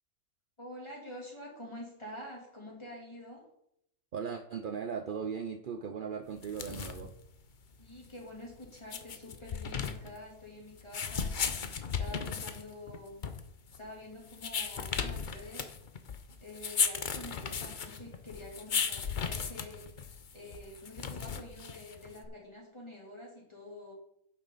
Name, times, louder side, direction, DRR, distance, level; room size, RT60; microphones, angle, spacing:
voice 1, 0.6-3.4 7.8-11.3 11.9-13.2 13.7-15.7 16.4-19.8 20.3-23.9, left 1 dB, 20° left, -3 dB, 3.2 m, -47 dB
voice 2, 4.1-7.1, right 6 dB, 60° right, 7 dB, 0.5 m, -38 dB
sound 1, 6.4-22.3, left 6 dB, 45° left, 0.6 m, -36 dB
10.0 x 7.2 x 4.1 m, 0.75 s
omnidirectional pair, 1.6 m